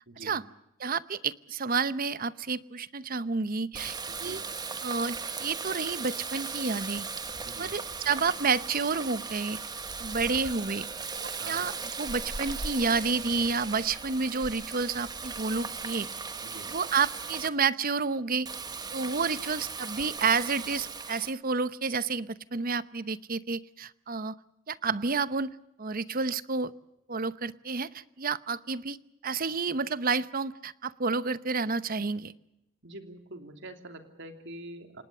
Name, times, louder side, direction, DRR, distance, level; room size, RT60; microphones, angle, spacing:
voice 1, 0.1-0.4 4.1-4.4 7.4-7.8 11.4-11.7 16.4-16.7 32.8-35.0, right 1 dB, 60° right, 6 dB, 3.0 m, -45 dB
voice 2, 0.8-4.4 4.8-7.1 7.6-9.6 10.0-10.9 11.2-11.7 12.0-16.1 16.7-18.5 18.9-24.3 24.7-25.5 25.8-26.7 27.1-29.0 29.2-32.3, right 4 dB, 40° right, 15 dB, 0.8 m, -30 dB
Water tap faucet, 3.7-17.5 18.5-21.3, right 4 dB, 20° right, 1.2 m, -37 dB
28.5 x 19.0 x 6.7 m, 0.85 s
head